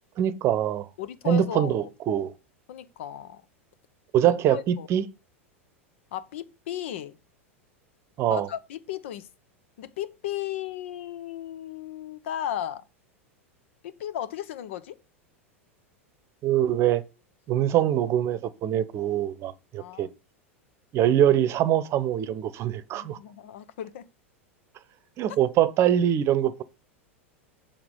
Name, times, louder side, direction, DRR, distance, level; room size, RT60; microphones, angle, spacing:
voice 1, 0.2-0.9 1.3-2.3 4.1-5.1 8.2-8.5 16.4-17.0 17.5-20.1 20.9-23.2 25.2-26.6, right 11 dB, 40° right, 0.8 m, -23 dB
voice 2, 1.0-1.9 2.7-3.4 4.2-4.9 6.1-7.2 8.3-9.3 9.8-12.8 13.8-15.0 19.8-20.1 22.9-24.1, left 11 dB, 65° left, 0.8 m, -35 dB
7.3 x 4.9 x 5.4 m
hypercardioid pair, 90°, 7 cm